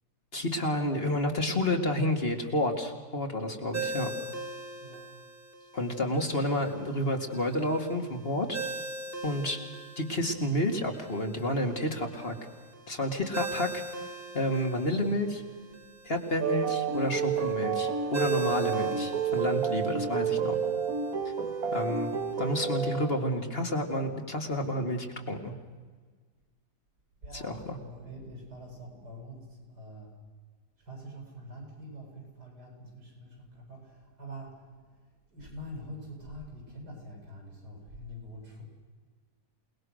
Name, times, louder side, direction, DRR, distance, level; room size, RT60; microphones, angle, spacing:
voice 1, 0.3-4.1 5.7-8.6 9.2-9.6 10.0-12.4 12.9-13.8 14.3-15.4 16.0-20.6 21.7-22.1 22.4-25.5 27.3-27.8, left 1 dB, 35° left, 3 dB, 2.4 m, -30 dB
Ringtone, 3.7-22.9, right 3 dB, 35° right, 2.4 m, -42 dB
sound 1, 16.4-23.4, right 6 dB, 60° right, 1.7 m, -30 dB
voice 2, 27.2-30.1 30.8-34.6 35.3-38.6, equal, 85° right, 1 dB, 8.0 m, -45 dB
28.5 x 19.5 x 6.5 m, 1.5 s
omnidirectional pair, 1.7 m